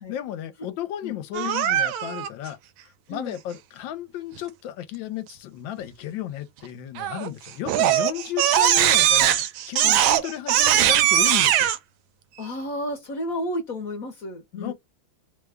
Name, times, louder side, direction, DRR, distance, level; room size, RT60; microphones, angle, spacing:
voice 1, 0.1-2.6 3.1-11.7 14.5-14.7, left 12 dB, 80° left, 1.3 m, -33 dB
Crying sobbing, 1.3-2.3 7.0-7.3 7.7-11.8, right 11 dB, 85° right, 1.3 m, -20 dB
voice 2, 12.4-14.7, left 1 dB, 60° left, 1.0 m, -32 dB
3.2 x 2.2 x 3.4 m
omnidirectional pair, 2.1 m